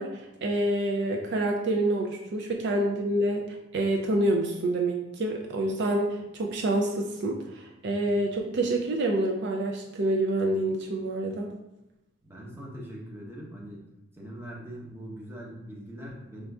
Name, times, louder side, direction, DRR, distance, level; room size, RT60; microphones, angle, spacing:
voice 1, 0.0-3.4 3.7-11.5, right 1 dB, 55° right, 1 dB, 0.4 m, -27 dB
voice 2, 12.2-13.8 14.2-16.5, equal, 10° right, -3 dB, 0.8 m, -41 dB
5.1 x 2.5 x 3.4 m, 0.90 s
head